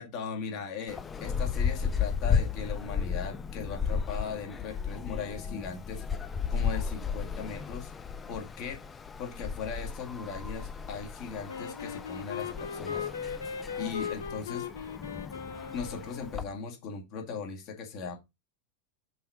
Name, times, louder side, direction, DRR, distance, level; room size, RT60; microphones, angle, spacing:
voice 1, 0.0-6.0 6.5-7.9 8.3-8.8 9.2-13.1 13.8-14.7 15.7-18.2, left 5 dB, 40° left, 2.0 m, -38 dB
sound 1, 0.9-16.4, left 6 dB, 20° left, 0.5 m, -34 dB
Wind instrument woodwind instrument, 11.5-16.5, left 7 dB, 70° left, 0.8 m, -38 dB
5.4 x 4.4 x 4.3 m
figure-of-eight pair, 90°, 0 cm